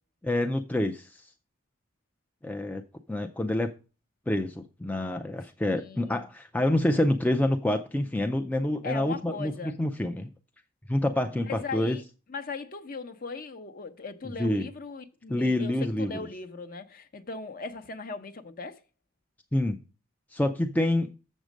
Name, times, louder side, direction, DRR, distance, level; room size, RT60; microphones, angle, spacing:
voice 1, 0.2-1.3 2.4-2.8 3.1-3.7 4.3-10.3 10.9-12.0 14.4-14.7 15.3-16.1 19.5-19.8 20.3-21.1, left 1 dB, 5° left, 0.3 m, -27 dB
voice 2, 5.7-6.2 8.8-9.8 11.3-12.0 12.3-18.8, left 4 dB, 40° left, 0.7 m, -38 dB
7.2 x 6.3 x 5.1 m
head